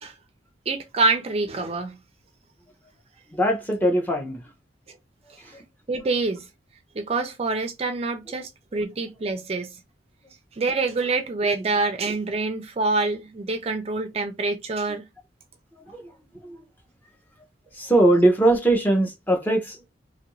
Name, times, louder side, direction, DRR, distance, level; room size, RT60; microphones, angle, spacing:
voice 1, 0.7-2.0 5.9-6.5 7.0-9.7 10.6-15.0, right 3 dB, 35° right, 0.4 m, -26 dB
voice 2, 3.3-4.4 5.4-5.6 15.7-16.0 16.4-16.6 17.7-19.9, right 1 dB, 10° left, 0.6 m, -21 dB
3.0 x 2.5 x 2.9 m
head